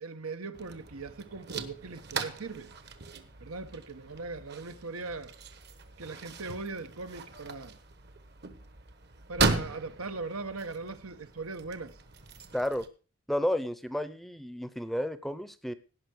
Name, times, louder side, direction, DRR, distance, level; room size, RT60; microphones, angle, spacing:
voice 1, 0.0-2.7 3.4-5.3 6.0-7.8 9.3-12.0, right 3 dB, 85° right, 1.2 m, -39 dB
sound 1, 0.5-12.9, right 3 dB, 50° right, 1.2 m, -37 dB
voice 2, 12.5-12.9 13.3-15.7, left 1 dB, ahead, 0.6 m, -32 dB
17.5 x 5.8 x 6.4 m
head